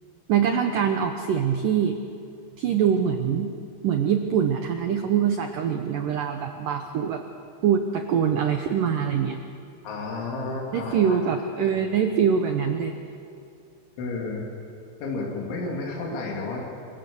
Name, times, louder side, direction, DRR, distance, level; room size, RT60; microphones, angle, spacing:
voice 1, 0.3-2.0 2.6-3.5 3.8-7.2 7.6-9.4 10.7-12.9, right 8 dB, 90° right, 5 dB, 1.8 m, -24 dB
voice 2, 9.8-11.2 11.6-11.8 14.0-14.5 15.0-16.7, left 3 dB, 75° left, -2 dB, 5.2 m, -31 dB
27.0 x 24.0 x 7.1 m, 2.6 s
omnidirectional pair, 5.5 m